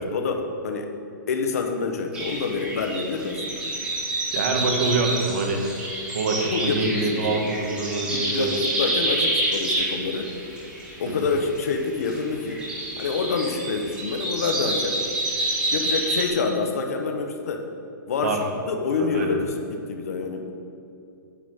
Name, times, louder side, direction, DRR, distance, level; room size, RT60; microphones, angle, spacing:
voice 1, 0.1-0.9 1.3-3.6 6.5-7.4 8.1-10.3 11.0-12.6 13.0-15.0 15.7-17.7 18.1-18.4 18.7-20.5, left 4 dB, 45° left, 5 dB, 1.1 m, -27 dB
sound 1, 2.1-16.3, right 1 dB, 10° right, 1.5 m, -28 dB
voice 2, 4.3-5.6 6.1-8.6 11.1-11.3 18.2-18.4 19.0-19.4, right 3 dB, 45° right, 2 dB, 1.5 m, -25 dB
9.3 x 5.9 x 8.2 m, 2.7 s
hypercardioid pair, 180°, 11 cm